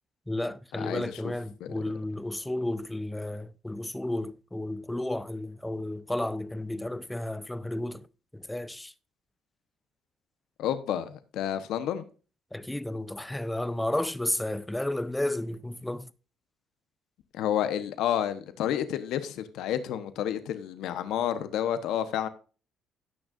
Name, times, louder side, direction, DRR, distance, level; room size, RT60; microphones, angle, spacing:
voice 1, 0.3-8.1 8.3-8.9 12.5-16.1, left 1 dB, 5° left, 0.5 m, -32 dB
voice 2, 0.8-1.1 10.6-12.0 17.3-22.3, left 10 dB, 75° left, 1.0 m, -30 dB
17.0 x 6.3 x 2.5 m
cardioid pair, 105°, 0 cm